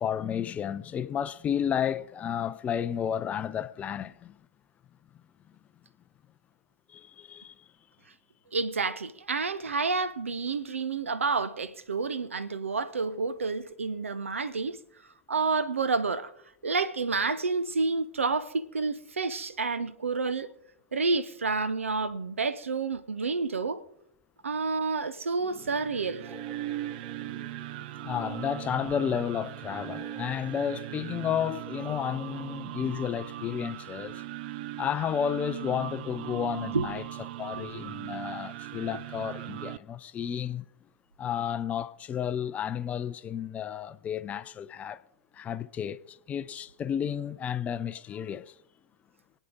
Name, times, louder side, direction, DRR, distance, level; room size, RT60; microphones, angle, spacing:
voice 1, 0.0-4.4 6.9-7.5 28.0-34.2 34.8-37.0 37.4-40.6 41.2-45.0 45.3-48.5, left 8 dB, 20° left, 0.5 m, -32 dB
voice 2, 8.5-14.8 15.3-16.3 16.6-20.5 20.9-23.8 24.4-26.4 36.7-36.9 37.5-37.7, right 4 dB, 70° right, 0.8 m, -29 dB
sound 1, 25.3-32.6, left 1 dB, 5° right, 2.2 m, -51 dB
sound 2, 25.5-39.8, right 15 dB, 45° right, 0.5 m, -39 dB
26.5 x 9.2 x 3.8 m
figure-of-eight pair, 100°, 7 cm